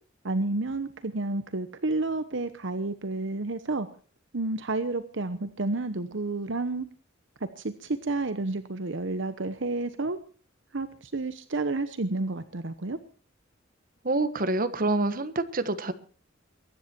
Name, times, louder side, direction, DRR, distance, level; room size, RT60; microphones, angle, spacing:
voice 1, 0.2-3.9 4.3-6.9 7.6-10.2 10.7-13.0, right 2 dB, 65° right, 11 dB, 1.0 m, -30 dB
voice 2, 14.0-15.9, right 2 dB, 45° right, 10 dB, 1.4 m, -26 dB
23.0 x 10.5 x 4.5 m, 0.41 s
head